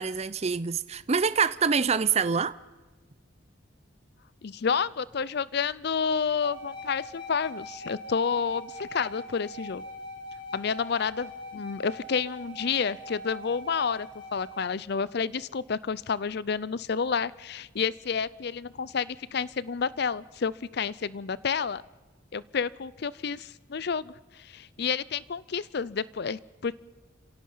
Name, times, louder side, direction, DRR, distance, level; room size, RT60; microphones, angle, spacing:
voice 1, 0.0-2.6, right 5 dB, 35° right, 0.6 m, -25 dB
voice 2, 4.4-9.8 10.5-21.8 22.3-24.1 24.4-26.7, left 6 dB, 60° left, 0.5 m, -30 dB
sound 1, 6.4-14.7, left 1 dB, 25° left, 2.5 m, -42 dB
29.5 x 17.0 x 5.6 m
head